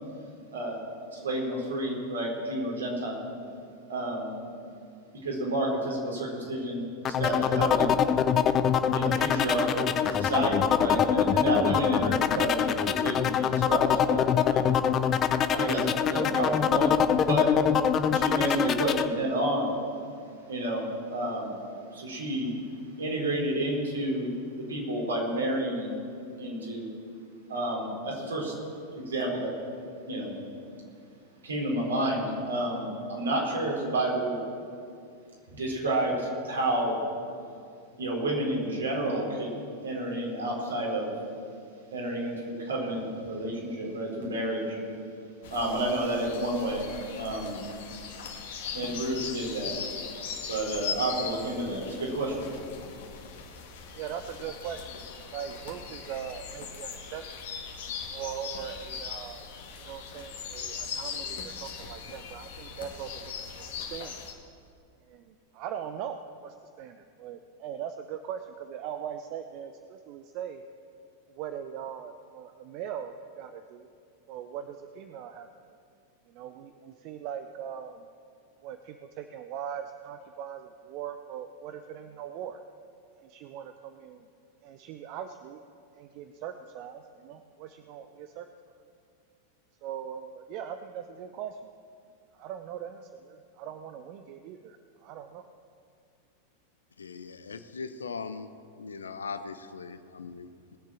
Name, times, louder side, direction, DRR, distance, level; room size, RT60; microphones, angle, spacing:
voice 1, 1.1-3.2 3.9-4.3 5.2-7.9 8.9-14.7 15.5-17.5 18.1-19.7 20.5-21.5 21.9-22.5 23.0-24.4 24.7-25.9 26.4-26.9 27.5-28.5 29.0-29.5 30.1-30.3 31.4-34.4 35.5-37.0 38.0-39.5 39.8-41.1 41.9-44.8 45.5-46.8 47.2-47.6 48.7-49.7 50.5-52.4, right 1 dB, 70° right, -2 dB, 4.2 m, -30 dB
sound 1, 7.0-19.1, left 8 dB, 30° left, 0.6 m, -24 dB
sound 2, 45.4-64.3, left 6 dB, 55° left, 1.8 m, -39 dB
voice 2, 53.9-55.0 55.3-57.4 58.1-59.5 59.8-63.3 63.6-64.1 65.1-65.2 65.5-70.6 71.3-73.9 74.3-75.5 76.3-78.0 78.6-82.6 83.2-84.2 84.6-85.6 85.9-88.5 89.8-91.6 92.4-94.8 95.0-95.4, right 9 dB, 45° right, 9 dB, 0.6 m, -40 dB
voice 3, 97.0-98.5 98.8-100.8, left 5 dB, 70° left, 11 dB, 0.7 m, -39 dB
20.0 x 7.4 x 7.3 m, 2.4 s
figure-of-eight pair, 90°, 0 cm